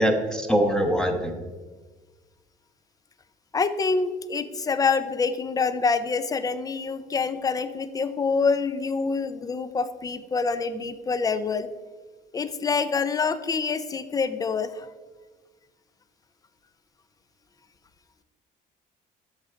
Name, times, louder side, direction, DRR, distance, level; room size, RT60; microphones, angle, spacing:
voice 1, 0.0-1.3, equal, 5° left, 4 dB, 0.9 m, -23 dB
voice 2, 3.5-11.7 12.3-14.9, left 4 dB, 20° left, 13 dB, 0.5 m, -26 dB
8.1 x 6.2 x 4.4 m, 1.3 s
cardioid pair, 110°, 17 cm